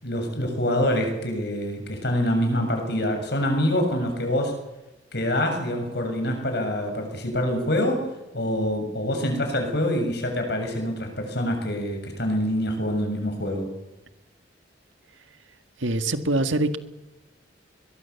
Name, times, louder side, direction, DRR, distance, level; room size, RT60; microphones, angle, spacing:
voice 1, 0.0-4.5 5.1-8.1 8.3-13.7, left 1 dB, 60° left, 4 dB, 7.2 m, -25 dB
voice 2, 15.8-16.8, right 2 dB, 85° right, 9 dB, 1.9 m, -24 dB
22.5 x 21.5 x 7.2 m, 1.0 s
head